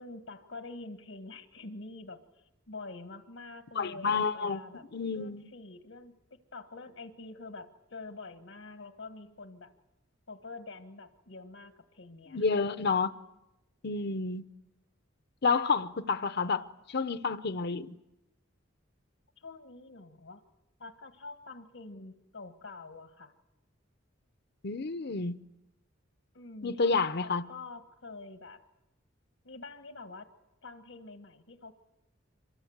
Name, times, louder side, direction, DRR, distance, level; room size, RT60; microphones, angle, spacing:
voice 1, 0.0-4.8 5.1-6.1 6.5-9.7 10.3-12.6 19.4-20.4 20.8-23.3 26.3-28.6 29.4-30.3 30.6-31.7, left 3 dB, 85° left, 1.6 m, -46 dB
voice 2, 3.7-4.6 4.9-5.5 12.3-13.1 13.8-14.4 15.4-17.9 24.6-25.4 26.6-27.4, left 4 dB, 55° left, 0.8 m, -29 dB
26.0 x 23.0 x 8.0 m
head